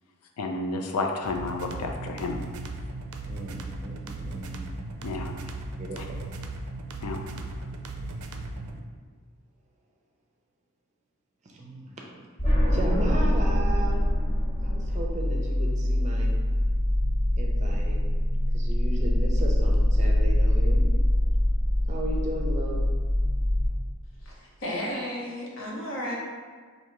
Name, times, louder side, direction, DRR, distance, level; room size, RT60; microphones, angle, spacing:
voice 1, 0.4-2.4 5.0-5.3 6.0-6.1 7.0-7.2, left 3 dB, 85° left, 3 dB, 0.4 m, -31 dB
sound 1, 1.2-8.8, right 2 dB, 85° right, 0.4 m, -37 dB
voice 2, 3.3-4.6 5.8-6.0 11.4-12.2 12.7-14.0 14.6-16.3 17.4-18.0 18.5-20.8 21.9-22.8, right 1 dB, 30° right, -1 dB, 0.5 m, -35 dB
sound 2, 12.4-23.7, left 1 dB, 30° left, 0.6 m, -24 dB
voice 3, 24.2-26.1, equal, 60° left, -4 dB, 0.9 m, -33 dB
4.7 x 2.6 x 3.0 m, 1.6 s
head